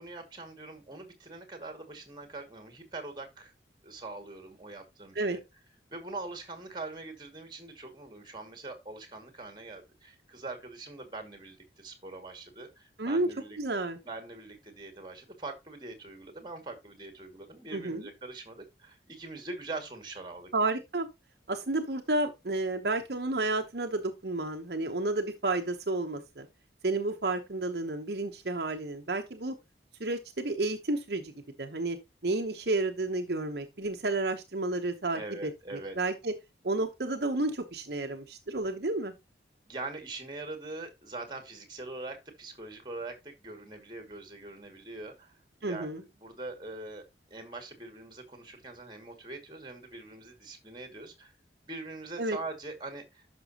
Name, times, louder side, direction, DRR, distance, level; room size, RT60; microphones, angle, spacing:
voice 1, 0.0-3.5 3.8-5.4 5.9-13.6 14.0-20.5 35.1-36.0 39.7-47.0 47.3-51.3 51.7-53.3, right 3 dB, 25° right, 2.3 m, -43 dB
voice 2, 13.6-14.0 17.7-18.1 20.5-21.1 21.5-26.5 26.8-29.5 30.0-31.3 31.6-32.0 32.2-36.3 36.6-39.1 45.6-46.0 52.2-52.4, right 2 dB, 65° right, 1.0 m, -31 dB
11.5 x 6.2 x 2.9 m
head